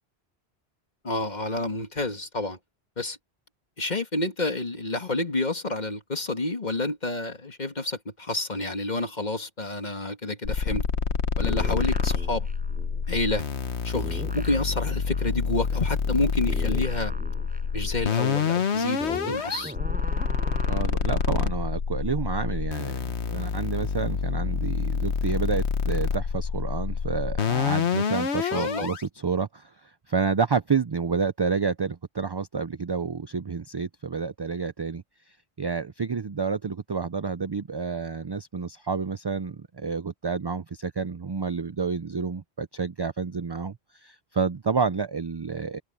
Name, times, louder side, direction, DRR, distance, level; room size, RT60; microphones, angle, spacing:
voice 1, 1.0-2.6 3.0-3.2 3.8-10.8 11.4-12.5 13.1-13.4 13.8-17.1 17.7-19.7 28.4-28.9, left 2 dB, 40° left, 2.2 m, -29 dB
sound 1, 10.4-29.0, left 6 dB, 90° left, 1.4 m, -27 dB
sound 2, 11.4-13.7 13.9-21.5, equal, 10° right, 5.2 m, -40 dB
voice 2, 20.7-45.8, right 5 dB, 35° right, 0.4 m, -29 dB
omnidirectional pair, 1.1 m